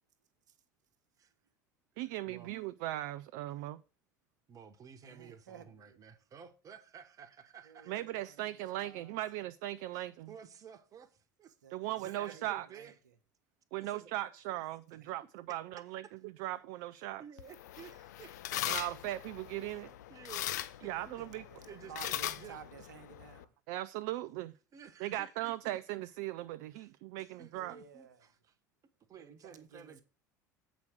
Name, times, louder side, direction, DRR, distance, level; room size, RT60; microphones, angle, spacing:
voice 1, 2.0-3.8 7.9-10.3 11.7-12.7 13.7-17.2 18.6-19.9 20.8-21.4 23.7-24.5 25.0-27.8, right 15 dB, 60° right, 0.4 m, -38 dB
voice 2, 4.5-8.0 8.4-8.7 9.9-11.5 12.0-12.9 13.8-14.1 15.5-15.6 17.2-18.6 20.1-21.1 21.7-22.6 24.7-25.5 26.7-26.9 27.1-28.5 29.1-30.0, right 7 dB, 35° right, 1.3 m, -53 dB
voice 3, 5.0-6.0 7.6-9.2 11.6-13.2 15.0-15.1 18.8-19.0 21.1-23.5 27.5-28.2 29.2-30.0, right 7 dB, 75° right, 1.2 m, -54 dB
sound 1, 17.4-23.4, left 13 dB, 70° left, 0.5 m, -40 dB
8.2 x 5.0 x 6.3 m
figure-of-eight pair, 70°, 10 cm